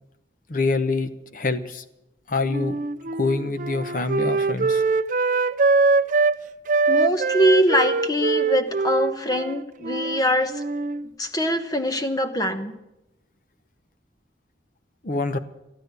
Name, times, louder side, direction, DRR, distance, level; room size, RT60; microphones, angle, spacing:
voice 1, 0.5-1.8 2.3-2.8 3.1-4.8 15.0-15.4, left 3 dB, 50° left, 11 dB, 0.9 m, -25 dB
Wind instrument woodwind instrument, 2.5-6.4 6.7-10.2 10.5-11.1, right 4 dB, 45° right, 0.5 m, -23 dB
voice 2, 6.9-10.6 11.2-12.7, equal, 20° left, 8 dB, 1.1 m, -22 dB
13.5 x 12.5 x 8.1 m, 0.92 s
head